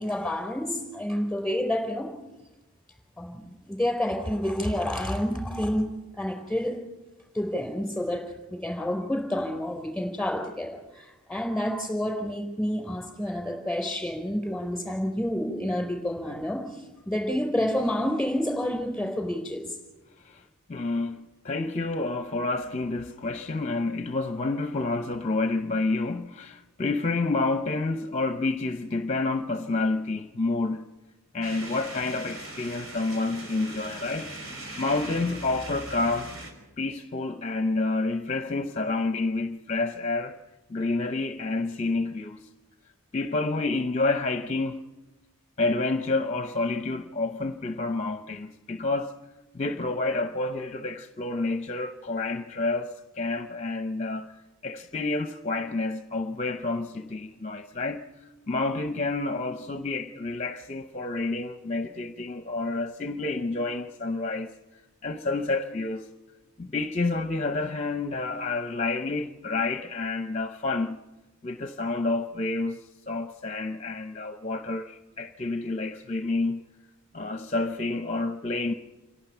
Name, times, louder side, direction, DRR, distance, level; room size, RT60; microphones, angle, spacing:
voice 1, 0.0-2.1 3.2-6.8 7.3-19.8, left 1 dB, ahead, 4.2 m, -29 dB
voice 2, 20.7-30.9 31.3-34.3 34.8-36.3 36.8-40.4 40.7-42.4 43.1-44.8 45.6-49.1 49.5-54.3 54.6-58.1 58.5-64.5 65.0-66.1 66.6-71.0 71.4-76.6 77.1-78.7, left 3 dB, 30° left, 0.7 m, -29 dB
sound 1, 31.4-36.5, right 1 dB, 65° right, 5.1 m, -40 dB
27.5 x 11.5 x 9.1 m
head